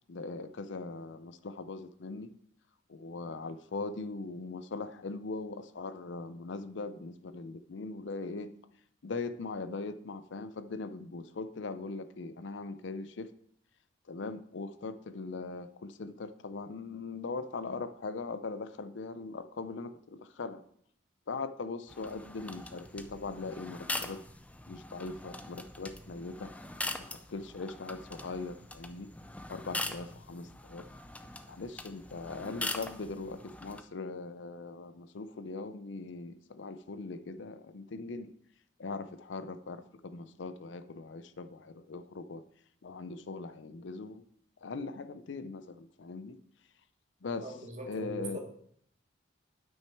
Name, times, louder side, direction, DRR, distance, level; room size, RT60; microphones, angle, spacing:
voice 1, 0.1-2.3 2.9-8.5 9.0-13.3 14.1-20.6 21.3-24.2 24.7-26.5 27.3-29.1 29.5-30.9 31.5-38.3 38.8-42.4 42.8-44.2 44.6-46.4 47.2-47.6 47.9-48.4, left 3 dB, 70° left, 11 dB, 0.5 m, -40 dB
sound 1, 21.9-33.8, left 2 dB, 5° left, 0.4 m, -42 dB
voice 2, 47.4-48.4, right 1 dB, 35° right, 1 dB, 1.6 m, -41 dB
8.9 x 6.0 x 4.5 m, 0.65 s
head